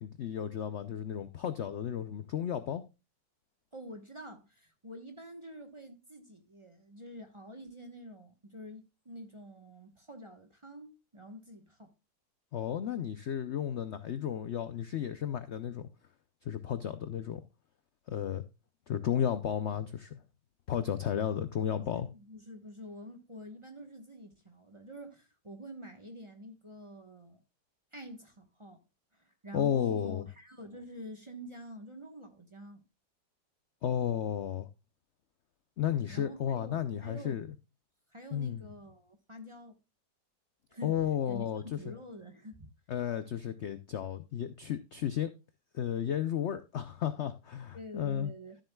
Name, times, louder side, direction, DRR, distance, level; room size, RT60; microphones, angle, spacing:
voice 1, 0.0-2.8 12.5-15.9 16.4-17.4 18.1-18.4 18.9-20.2 20.7-22.1 29.5-30.3 33.8-34.7 35.8-37.5 38.3-38.6 40.8-41.9 42.9-45.3 45.7-48.3, left 9 dB, 65° left, 0.6 m, -33 dB
voice 2, 3.7-11.9 21.8-27.4 27.9-28.8 29.1-32.8 35.9-37.4 38.1-39.8 40.7-42.7 47.7-48.6, equal, 20° right, 1.0 m, -47 dB
13.0 x 7.6 x 2.2 m
omnidirectional pair, 1.9 m